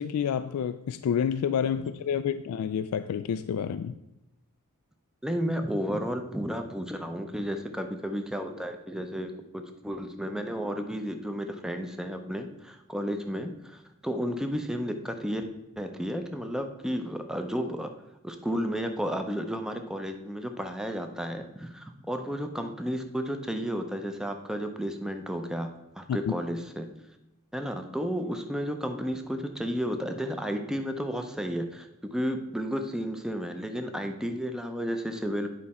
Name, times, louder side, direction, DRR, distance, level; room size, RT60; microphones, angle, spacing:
voice 1, 0.0-4.0 26.1-26.3, left 8 dB, 90° left, 11 dB, 0.3 m, -29 dB
voice 2, 5.2-9.3 9.8-15.4 15.8-17.9 18.2-25.7 26.0-26.9 27.5-35.5, equal, 5° right, 5 dB, 0.5 m, -32 dB
9.5 x 5.2 x 4.2 m, 0.94 s
head